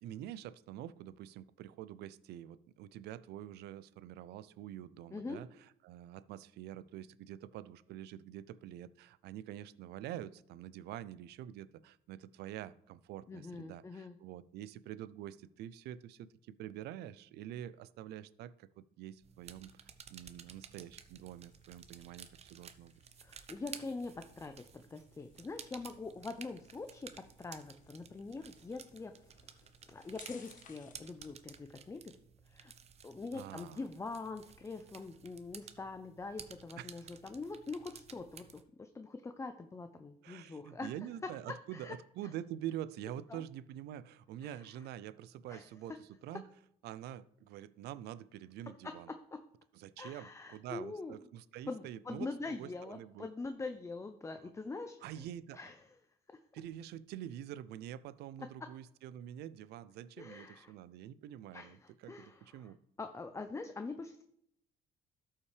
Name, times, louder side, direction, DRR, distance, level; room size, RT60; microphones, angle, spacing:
voice 1, 0.0-5.5 5.8-19.8 20.1-22.9 33.3-33.8 36.8-37.0 40.2-46.5 46.8-49.1 49.7-53.3 55.0-55.6 56.5-62.8, right 11 dB, 75° right, 17 dB, 0.4 m, -46 dB
voice 2, 13.3-14.2 23.2-27.1 27.4-32.1 32.5-32.7 33.0-40.9 41.2-41.3 41.7-42.0 43.3-43.4 44.4-44.6 45.5-45.7 48.8-49.4 50.0-51.2 51.7-55.2 55.5-55.8 60.2-60.7 61.5-62.7 63.0-64.2, left 3 dB, 15° left, 7 dB, 0.5 m, -44 dB
sound 1, 19.2-38.6, right 7 dB, 40° right, 0.8 m, -54 dB
sound 2, 20.5-31.1, left 6 dB, 50° left, 1.3 m, -64 dB
13.0 x 5.7 x 3.3 m, 0.73 s
cardioid pair, 110°, 17 cm